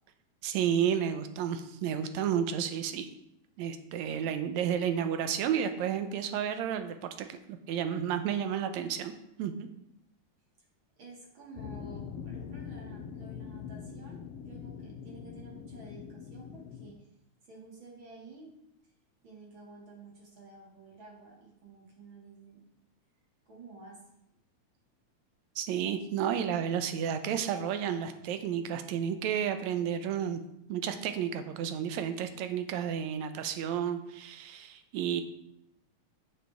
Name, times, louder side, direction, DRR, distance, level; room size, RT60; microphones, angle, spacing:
voice 1, 0.4-3.1 3.6-9.1 9.4-9.7 25.6-30.4 30.7-35.2, right 8 dB, 75° right, 8 dB, 2.0 m, -31 dB
voice 2, 11.0-17.0 17.5-18.6 19.2-22.6 23.5-24.0, right 3 dB, 45° right, -3 dB, 2.8 m, -51 dB
sound 1, 11.6-16.9, left 7 dB, 75° left, 1.4 m, -43 dB
11.5 x 7.2 x 3.5 m, 0.80 s
omnidirectional pair, 3.4 m